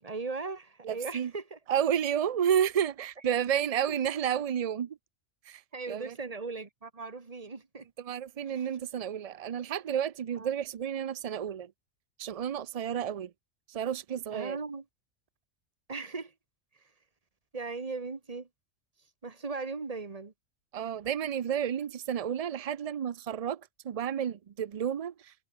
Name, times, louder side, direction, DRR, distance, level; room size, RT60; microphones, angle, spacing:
voice 1, 0.0-1.6 3.9-4.0 5.7-7.9 8.4-8.7 10.4-10.5 14.3-14.8 15.9-16.3 17.5-18.5 19.2-20.3, right 4 dB, 30° right, 1.4 m, -38 dB
voice 2, 0.8-1.3 1.7-5.0 5.5-5.6 5.9-6.1 8.0-11.7 12.2-13.3 13.7-14.6 20.7-25.3, right 9 dB, 65° right, 0.3 m, -31 dB
omnidirectional pair, 1.3 m